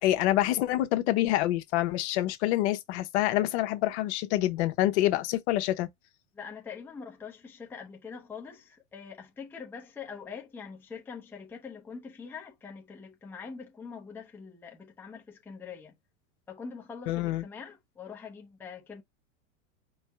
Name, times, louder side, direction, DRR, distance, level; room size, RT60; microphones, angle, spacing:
voice 1, 0.0-5.9 17.1-17.5, left 15 dB, 60° left, 0.9 m, -26 dB
voice 2, 6.3-15.9 16.5-19.0, left 6 dB, 5° left, 0.6 m, -44 dB
4.5 x 2.2 x 4.4 m
supercardioid pair, 145°, 38 cm